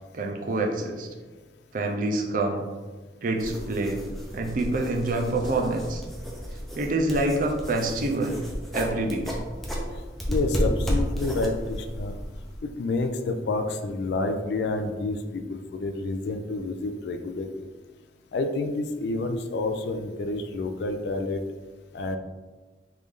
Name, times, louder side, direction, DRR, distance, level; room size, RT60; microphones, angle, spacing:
voice 1, 0.1-1.1 1.7-2.7 3.2-4.0 4.3-6.0 6.8-8.4 8.7-9.2, right 2 dB, 50° right, 2 dB, 0.5 m, -26 dB
sound 1, 3.4-12.6, equal, ahead, 0.5 m, -32 dB
voice 2, 10.3-12.2 12.6-17.5 18.3-21.4 21.9-22.2, left 2 dB, 65° left, 6 dB, 0.3 m, -29 dB
3.2 x 2.6 x 3.6 m, 1.3 s
head